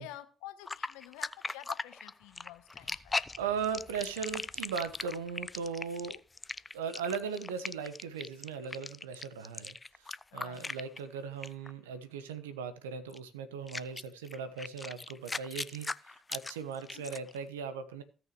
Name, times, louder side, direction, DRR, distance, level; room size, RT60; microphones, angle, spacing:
voice 1, 0.0-3.1 10.3-10.7 16.9-17.2, left 15 dB, 75° left, 10 dB, 1.1 m, -49 dB
sound 1, 0.7-11.2 11.4-11.7 13.1-13.2 13.7-17.4, left 3 dB, 25° left, 0.5 m, -39 dB
voice 2, 3.4-6.2 6.7-18.0, right 6 dB, 85° right, 11 dB, 1.0 m, -38 dB
17.0 x 6.2 x 3.1 m, 0.35 s
hypercardioid pair, 45°, 0 cm